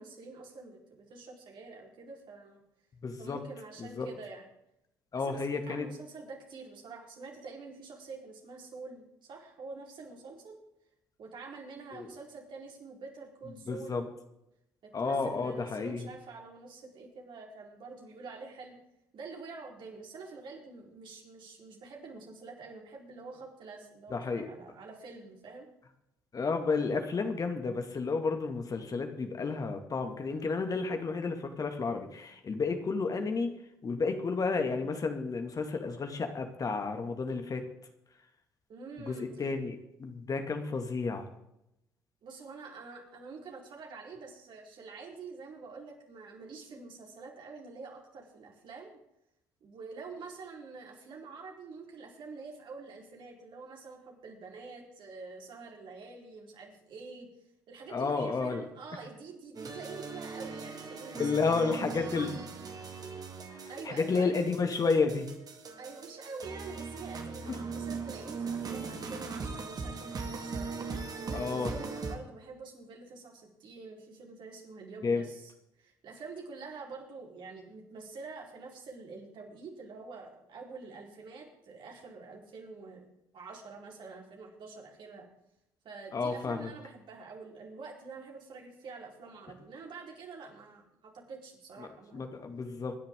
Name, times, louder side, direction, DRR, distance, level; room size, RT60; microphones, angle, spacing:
voice 1, 0.0-2.6 3.2-4.5 5.1-10.6 11.2-14.0 14.8-18.8 19.1-25.7 38.7-39.3 42.2-49.0 49.6-57.3 57.7-62.4 63.7-64.4 65.8-70.7 71.3-75.5 75.8-83.1 83.3-85.3 85.8-92.3, right 4 dB, 60° right, 0 dB, 4.5 m, -46 dB
voice 2, 3.0-3.4 3.8-4.1 5.1-5.9 11.9-12.1 13.7-14.0 14.9-16.1 24.1-24.5 26.3-33.5 33.8-37.6 39.1-41.3 57.9-58.6 61.2-62.3 63.5-65.3 71.3-71.7 75.0-75.2 86.1-86.7 91.8-91.9 92.1-93.0, left 4 dB, 40° left, 5 dB, 2.3 m, -31 dB
sound 1, 59.5-72.2, right 4 dB, 45° right, 2.5 m, -40 dB
25.5 x 10.5 x 3.8 m, 0.84 s
hypercardioid pair, 50°, 9 cm